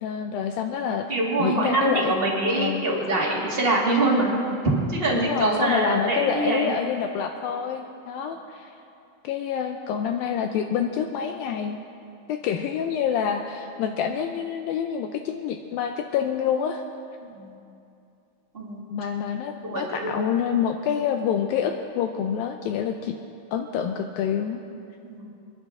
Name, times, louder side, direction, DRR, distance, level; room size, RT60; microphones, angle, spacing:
voice 1, 0.0-1.1 1.4-2.9 5.2-8.7 9.2-11.8 12.3-16.8 18.9-23.2 23.5-24.6, left 8 dB, 85° left, 6 dB, 2.1 m, -27 dB
voice 2, 1.1-4.3 4.9-6.7 17.3-17.5 18.5-18.8 19.6-20.3 25.0-25.2, right 2 dB, 20° right, -4 dB, 1.7 m, -24 dB
28.0 x 10.5 x 3.7 m, 2.6 s
omnidirectional pair, 4.7 m